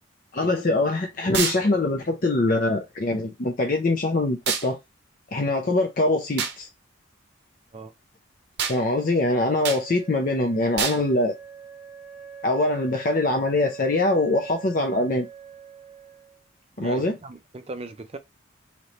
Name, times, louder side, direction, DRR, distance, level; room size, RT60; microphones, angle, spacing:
voice 1, 0.3-4.8 5.3-6.7 8.7-11.3 12.4-15.3 16.8-17.1, left 2 dB, 40° left, 0.5 m, -23 dB
sound 1, 1.3-1.6 4.5-4.7 6.4-6.6 8.6-8.8 9.6-9.8 10.8-11.0, right 7 dB, 55° right, 0.7 m, -26 dB
Wind instrument woodwind instrument, 8.7-16.4, right 6 dB, ahead, 1.1 m, -43 dB
voice 2, 16.8-18.2, right 2 dB, 30° right, 0.4 m, -38 dB
3.1 x 2.9 x 4.0 m
head